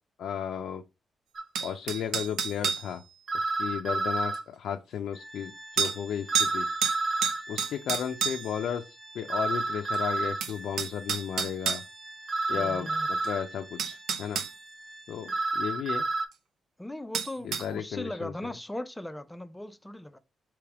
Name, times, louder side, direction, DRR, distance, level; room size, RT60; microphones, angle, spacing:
voice 1, 0.2-0.8 1.6-3.0 3.3-6.7 7.5-11.8 12.5-14.4 15.1-16.1 17.4-18.3, left 8 dB, 80° left, 0.4 m, -34 dB
sound 1, 1.3-1.4 3.3-4.4 6.3-7.4 9.3-10.4 12.3-13.4 15.3-16.2, right 3 dB, 40° right, 0.6 m, -29 dB
sound 2, 1.5-2.9 4.3-4.4 5.8-6.0 6.3-6.5 6.8-8.6 9.9-10.0 10.4-11.8 13.2-13.3 13.8-14.5 17.1-17.7, right 7 dB, 85° right, 0.5 m, -29 dB
Organ, 5.1-15.8, right 2 dB, 10° right, 0.8 m, -48 dB
voice 2, 12.5-13.1 16.8-20.2, left 1 dB, 10° left, 0.4 m, -38 dB
3.4 x 3.0 x 4.6 m
cardioid pair, 100°, 0 cm